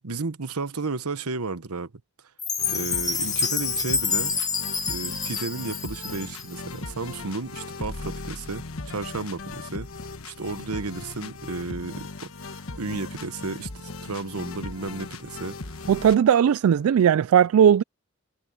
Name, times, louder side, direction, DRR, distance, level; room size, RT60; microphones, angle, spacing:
voice 1, 0.0-1.9 2.7-4.3 4.9-9.9 10.2-13.7 14.0-15.8, right 3 dB, 90° right, 1.1 m, -33 dB
Chime, 2.4-6.6, left 5 dB, 15° left, 1.5 m, -27 dB
sound 1, 2.6-16.2, left 3 dB, 65° left, 1.4 m, -38 dB
voice 2, 15.9-17.8, right 8 dB, 70° right, 0.3 m, -18 dB
head